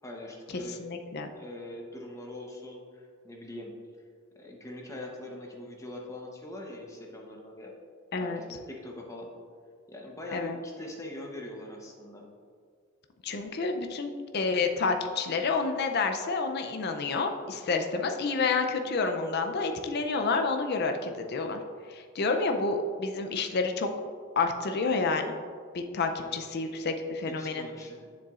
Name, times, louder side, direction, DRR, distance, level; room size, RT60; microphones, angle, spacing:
voice 1, 0.0-0.8 1.3-3.7 4.3-7.7 8.2-9.3 9.9-12.3 26.2-26.3 27.2-28.1, left 1 dB, 15° left, -1 dB, 0.9 m, -42 dB
voice 2, 0.8-1.3 8.1-8.4 10.3-10.6 13.2-21.6 21.9-23.9 24.4-25.4 25.7-27.6, left 4 dB, 50° left, 5 dB, 0.5 m, -29 dB
7.4 x 7.1 x 2.4 m, 2.1 s
head